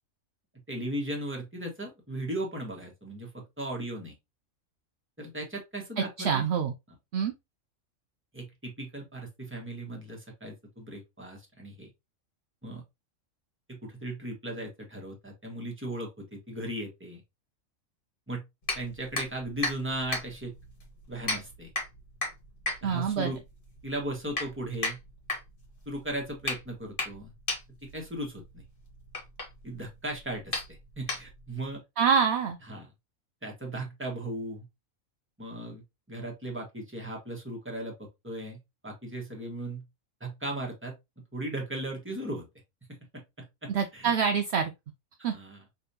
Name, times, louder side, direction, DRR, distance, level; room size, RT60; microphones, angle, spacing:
voice 1, 0.7-4.1 5.2-6.5 8.3-11.9 12.6-12.8 13.7-17.2 18.3-18.4 18.7-20.5 21.1-21.7 22.8-23.4 23.8-25.0 25.8-27.3 27.8-28.6 29.6-31.8 32.7-32.9 33.4-34.7 35.4-39.8 40.2-40.9 41.3-42.4 42.9-44.1 45.3-45.6, right 1 dB, 10° right, 1.4 m, -37 dB
voice 2, 6.0-6.7 7.1-7.3 22.8-23.3 32.0-32.6 43.7-44.7 45.2-45.3, right 7 dB, 65° right, 0.8 m, -26 dB
sound 1, 18.6-31.6, left 2 dB, 40° left, 1.6 m, -36 dB
5.1 x 3.4 x 2.7 m
omnidirectional pair, 1.4 m